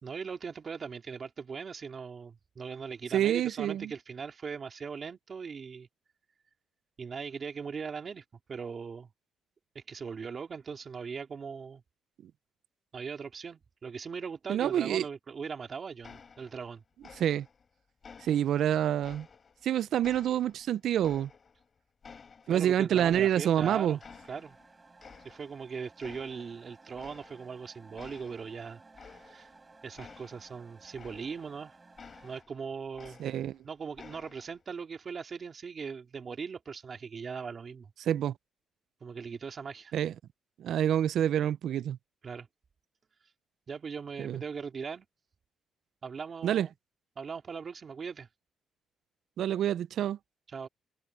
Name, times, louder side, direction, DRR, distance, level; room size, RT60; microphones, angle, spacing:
voice 1, 0.0-5.9 7.0-9.1 9.7-11.8 12.9-16.8 22.5-24.0 24.3-24.6 25.2-28.8 29.1-29.5 29.8-31.7 32.2-33.2 33.6-37.9 39.0-39.9 42.2-42.5 43.7-45.1 46.0-46.7 47.2-48.3 50.5-50.7, right 5 dB, 35° right, 3.1 m, -40 dB
voice 2, 3.1-3.9 14.5-15.0 17.2-17.5 18.2-19.3 19.6-21.3 22.5-24.0 33.2-33.6 38.1-38.3 39.9-40.1 40.6-42.0 44.2-44.4 46.4-46.7 49.4-50.2, right 10 dB, 70° right, 0.5 m, -27 dB
sound 1, 16.0-16.7 17.0-17.7 18.0-19.7 20.0-21.7 22.0-23.6 24.0-24.7 25.0-25.6 26.0-26.6 26.9-27.6 28.0-31.6 32.0-33.6 34.0-34.6, left 5 dB, 35° left, 4.4 m, -53 dB
sound 2, 23.2-32.4, right 3 dB, 20° right, 4.0 m, -57 dB
cardioid pair, 140°, 0 cm